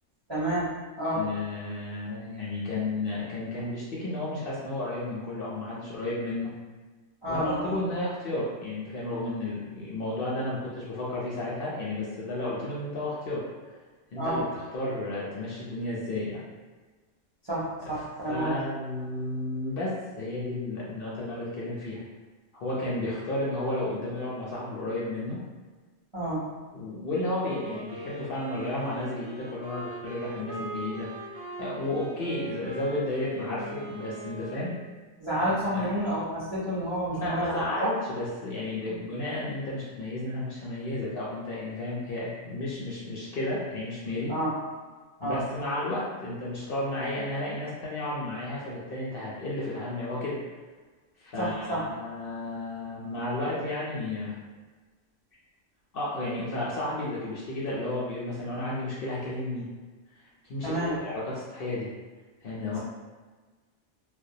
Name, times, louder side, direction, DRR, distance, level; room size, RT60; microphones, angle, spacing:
voice 1, 0.3-0.7 1.0-1.2 7.2-7.8 14.2-14.4 17.5-18.7 26.1-26.5 35.2-37.9 44.3-44.5 45.2-45.4 51.4-51.8 60.6-61.0, right 1 dB, 35° right, -10 dB, 0.4 m, -29 dB
voice 2, 1.1-6.5 7.3-13.5 14.1-16.4 17.8-17.9 18.3-22.0 22.5-25.4 26.7-34.8 35.4-35.9 37.1-44.3 45.2-50.4 51.2-54.4 55.9-59.7 60.5-61.9 62.4-62.8, left 2 dB, 60° left, -6 dB, 0.6 m, -32 dB
Wind instrument woodwind instrument, 27.4-35.0, right 3 dB, 70° right, 0.8 m, -41 dB
2.2 x 2.2 x 2.6 m, 1.3 s
omnidirectional pair, 1.3 m